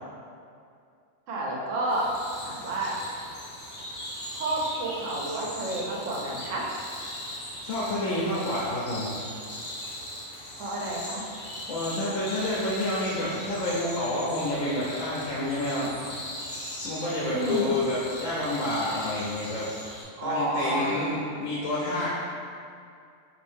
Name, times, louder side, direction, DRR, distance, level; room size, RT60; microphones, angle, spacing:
voice 1, 1.3-2.1 2.4-3.0 4.3-6.7 10.5-11.2 17.3-17.7 20.2-20.9, right 2 dB, 80° right, -3 dB, 1.0 m, -30 dB
sound 1, 1.9-20.0, left 1 dB, 55° left, 0.9 m, -39 dB
voice 2, 7.6-9.2 11.7-15.9 16.8-19.7 20.2-22.2, left 1 dB, 85° left, -7 dB, 0.9 m, -29 dB
2.6 x 2.6 x 3.4 m, 2.4 s
omnidirectional pair, 1.3 m